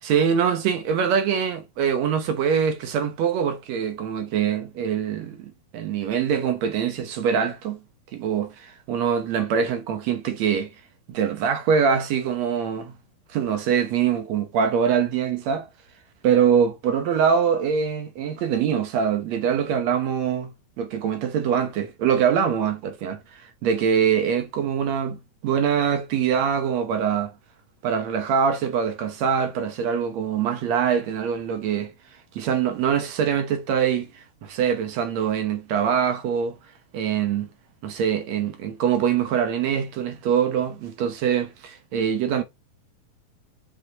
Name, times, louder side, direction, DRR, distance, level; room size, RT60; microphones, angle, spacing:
voice 1, 0.0-7.8 8.1-10.7 11.1-12.9 13.3-15.7 16.2-20.5 20.8-27.3 27.8-31.9 32.4-36.6 36.9-37.5 37.8-42.4, right 7 dB, 65° right, 1.8 m, -23 dB
6.2 x 5.5 x 2.9 m
omnidirectional pair, 4.1 m